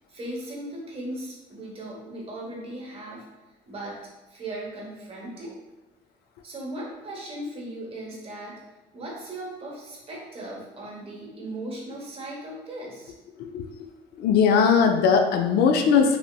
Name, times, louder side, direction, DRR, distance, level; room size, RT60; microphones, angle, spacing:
voice 1, 0.1-3.2 3.7-4.0 4.3-5.5 6.4-8.6 8.9-13.1, right 1 dB, 35° right, -3 dB, 1.0 m, -37 dB
voice 2, 14.2-16.2, left 6 dB, 70° left, 5 dB, 0.4 m, -19 dB
3.3 x 2.7 x 2.2 m, 1.1 s
cardioid pair, 110°, 17 cm